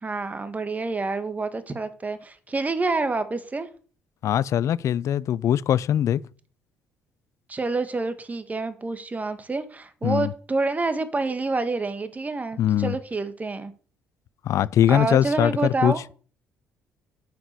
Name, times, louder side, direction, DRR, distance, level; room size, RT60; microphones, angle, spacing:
voice 1, 0.0-3.7 7.5-13.7 14.9-16.0, right 3 dB, 25° right, 1.8 m, -28 dB
voice 2, 4.2-6.2 10.0-10.3 12.6-12.9 14.5-15.9, left 10 dB, 60° left, 0.5 m, -21 dB
9.3 x 6.0 x 6.7 m
hypercardioid pair, 60°, 6 cm